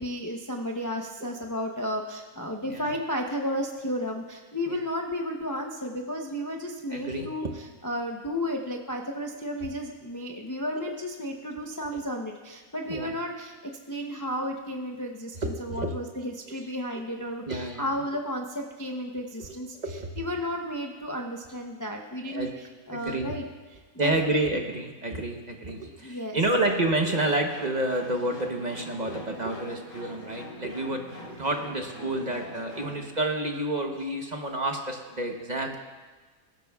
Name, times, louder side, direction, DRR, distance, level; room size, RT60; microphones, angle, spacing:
voice 1, 0.0-23.4 23.9-24.6 26.0-26.4, equal, 20° left, 1 dB, 0.6 m, -33 dB
voice 2, 6.9-7.5 10.8-10.9 12.9-13.1 15.4-15.9 17.5-17.9 19.7-20.1 22.3-22.5 22.9-23.4 24.0-31.0 31.3-35.8, right 2 dB, 35° right, 2 dB, 1.0 m, -29 dB
sound 1, 26.7-33.1, equal, 40° left, 2.5 m, -44 dB
20.5 x 12.0 x 2.4 m, 1.4 s
omnidirectional pair, 1.5 m